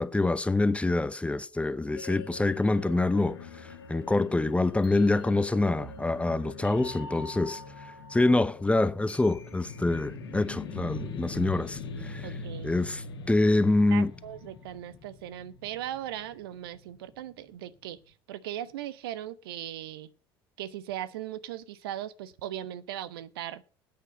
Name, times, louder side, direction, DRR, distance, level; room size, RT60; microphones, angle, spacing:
voice 1, 0.0-3.4 3.9-7.6 8.1-12.3 12.6-14.1, left 2 dB, 10° left, 0.8 m, -26 dB
sound 1, 2.0-14.9, left 3 dB, 80° left, 1.4 m, -44 dB
sound 2, 7.9-18.1, left 6 dB, 50° left, 1.6 m, -44 dB
voice 2, 12.2-12.7 13.9-18.0 18.3-20.1 20.6-23.8, right 12 dB, 70° right, 0.7 m, -38 dB
9.8 x 8.6 x 6.5 m
figure-of-eight pair, 65°, 13 cm